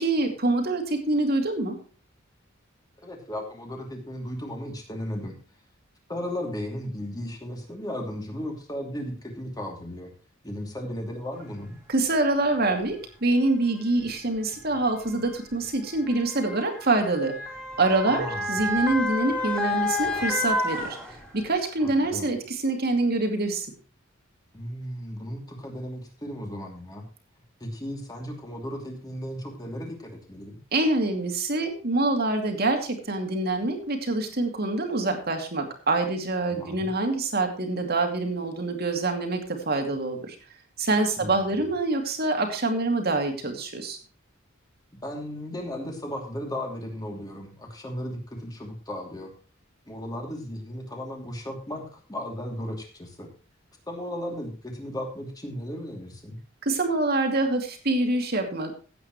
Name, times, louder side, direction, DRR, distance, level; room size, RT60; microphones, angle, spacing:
voice 1, 0.0-1.8 11.9-17.3 17.8-23.7 30.7-40.4 40.8-44.0 56.6-58.7, right 2 dB, 50° right, 4 dB, 2.5 m, -25 dB
voice 2, 3.0-5.4 6.1-10.1 10.4-11.7 18.0-18.5 21.8-22.3 24.5-27.0 27.6-30.6 36.5-36.9 41.2-41.7 44.9-49.3 49.9-53.3 53.9-56.4, left 1 dB, 20° left, 2 dB, 2.8 m, -35 dB
Motor vehicle (road) / Siren, 11.7-11.8 12.7-12.9 14.0-21.6 22.0-22.1, left 2 dB, 5° left, 3.2 m, -31 dB
16.0 x 8.8 x 3.1 m, 0.37 s
head